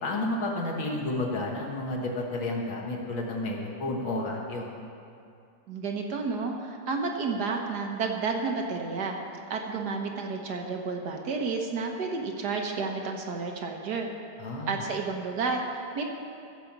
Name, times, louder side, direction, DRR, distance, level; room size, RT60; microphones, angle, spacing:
voice 1, 0.0-4.7 14.4-14.9, left 2 dB, 85° left, -2 dB, 2.1 m, -31 dB
voice 2, 5.7-9.2 9.5-14.1 14.7-16.0, right 4 dB, 60° right, 2 dB, 1.4 m, -31 dB
14.5 x 5.0 x 7.3 m, 2.5 s
omnidirectional pair, 2.1 m